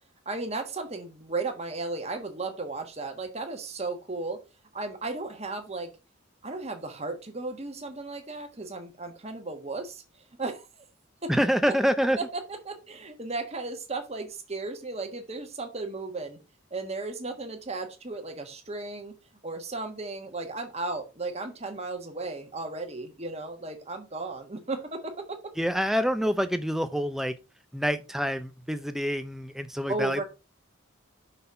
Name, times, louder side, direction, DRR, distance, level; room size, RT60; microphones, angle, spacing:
voice 1, 0.2-4.4 4.7-5.9 6.4-10.0 10.4-10.8 12.6-16.4 16.7-19.1 19.4-25.4 29.9-30.2, right 3 dB, 30° right, 1.3 m, -35 dB
voice 2, 11.3-12.2 25.6-27.3 27.7-30.2, equal, ahead, 0.5 m, -26 dB
5.6 x 4.0 x 5.6 m
head